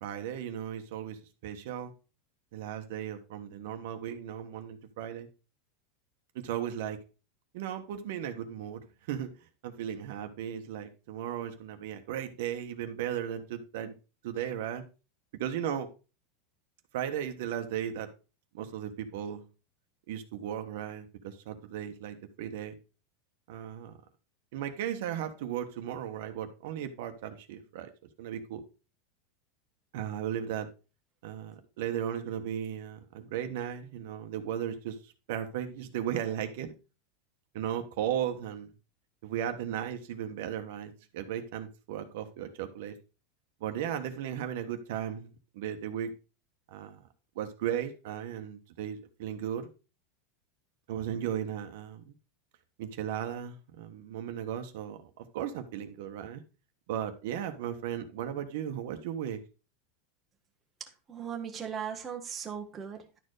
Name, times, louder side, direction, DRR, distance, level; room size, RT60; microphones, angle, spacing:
voice 1, 0.0-1.9 2.5-5.3 6.3-7.0 7.5-9.3 9.6-13.9 14.2-14.8 15.4-15.9 16.9-18.1 18.5-19.4 20.1-22.7 23.5-23.9 24.5-27.9 28.2-28.6 29.9-30.7 31.2-35.0 35.3-36.7 37.5-38.7 39.2-42.9 43.6-45.3 45.5-46.1 46.7-47.0 47.3-49.7 50.9-52.1 52.8-56.4 56.9-59.4, right 10 dB, 65° right, 7 dB, 1.3 m, -36 dB
voice 2, 60.8-63.2, right 7 dB, 15° right, 2 dB, 1.4 m, -38 dB
11.5 x 4.6 x 4.9 m, 0.32 s
supercardioid pair, 160°, 0 cm